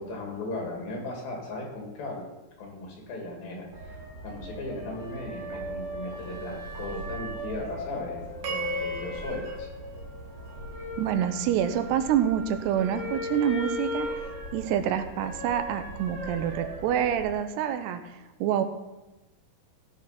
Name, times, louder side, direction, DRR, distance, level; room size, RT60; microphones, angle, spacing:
voice 1, 0.0-2.3 2.6-9.7, left 2 dB, 65° left, 0 dB, 4.0 m, -37 dB
sound 1, 3.7-17.3, left 1 dB, 30° right, 3.3 m, -38 dB
sound 2, 8.4-10.8, equal, 65° right, 3.1 m, -36 dB
voice 2, 11.0-14.1 14.5-18.6, right 9 dB, 85° right, 9 dB, 2.9 m, -27 dB
16.5 x 6.0 x 5.8 m, 1.1 s
omnidirectional pair, 4.7 m